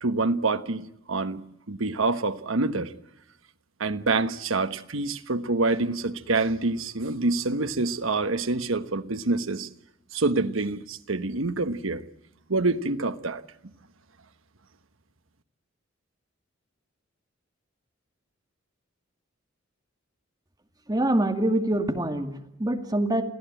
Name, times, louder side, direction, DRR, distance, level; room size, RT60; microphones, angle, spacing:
voice 1, 0.0-2.9 3.8-9.7 10.1-12.0 12.5-13.4, right 3 dB, 80° right, 1.2 m, -26 dB
voice 2, 20.9-23.2, right 1 dB, 20° right, 2.3 m, -25 dB
27.5 x 16.5 x 9.0 m
head